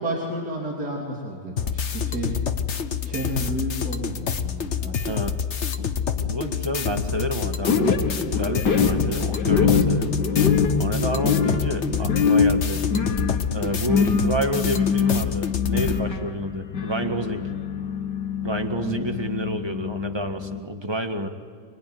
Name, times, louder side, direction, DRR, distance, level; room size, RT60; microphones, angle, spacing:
voice 1, 0.0-2.3 3.1-5.0 18.8-19.1, right 1 dB, 65° right, -2 dB, 3.9 m, -31 dB
sound 1, 1.6-16.0, left 7 dB, 45° left, 1.3 m, -27 dB
voice 2, 5.1-5.4 5.8-12.8 13.5-17.5 18.4-21.3, right 1 dB, 15° right, 6 dB, 1.6 m, -29 dB
sound 2, 7.7-20.6, left 6 dB, 85° left, 2.1 m, -24 dB
25.5 x 24.0 x 9.6 m, 2.1 s
omnidirectional pair, 1.8 m